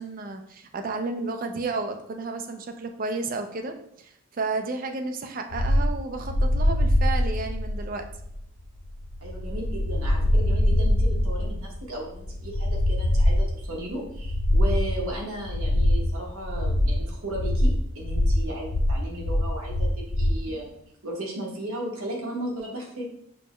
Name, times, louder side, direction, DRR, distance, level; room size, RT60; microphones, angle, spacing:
voice 1, 0.0-8.1 20.5-20.6, right 3 dB, 40° right, 6 dB, 0.4 m, -32 dB
sound 1, 5.5-20.4, left 1 dB, 45° left, 0.4 m, -24 dB
voice 2, 9.2-20.8 21.0-23.0, right 1 dB, 75° right, -2 dB, 1.2 m, -35 dB
6.3 x 2.2 x 3.0 m, 0.71 s
head